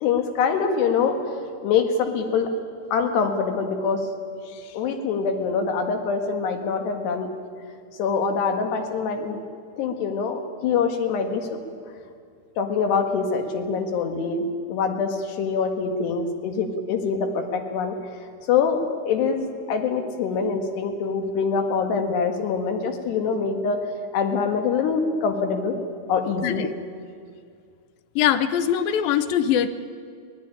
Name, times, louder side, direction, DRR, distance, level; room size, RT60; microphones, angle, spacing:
voice 1, 0.0-1.3 1.6-2.5 2.9-4.0 4.7-7.3 8.0-9.4 9.8-11.6 12.6-18.0 18.5-23.8 24.1-25.8 26.1-26.6, left 5 dB, 90° left, 5 dB, 4.0 m, -24 dB
voice 2, 26.4-26.7 28.2-29.7, left 9 dB, 75° left, 12 dB, 2.4 m, -22 dB
22.0 x 18.0 x 10.0 m, 2.2 s
omnidirectional pair, 4.6 m